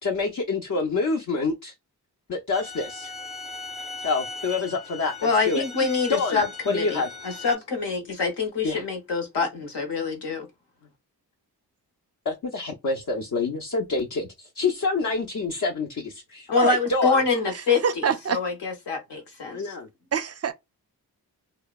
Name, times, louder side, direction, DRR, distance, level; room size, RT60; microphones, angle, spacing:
voice 1, 0.0-1.7 2.3-3.1 4.0-5.1 5.4-5.6 6.1-7.1 8.6-8.8 12.3-17.2 19.4-19.9, left 3 dB, 45° left, 0.6 m, -27 dB
sound 1, 2.5-7.6, left 3 dB, ahead, 0.7 m, -38 dB
voice 2, 5.2-10.5 16.5-19.7, left 4 dB, 75° left, 0.9 m, -26 dB
voice 3, 17.5-18.4 20.1-20.5, right 7 dB, 40° right, 0.4 m, -26 dB
2.7 x 2.0 x 2.3 m
cardioid pair, 40°, 41 cm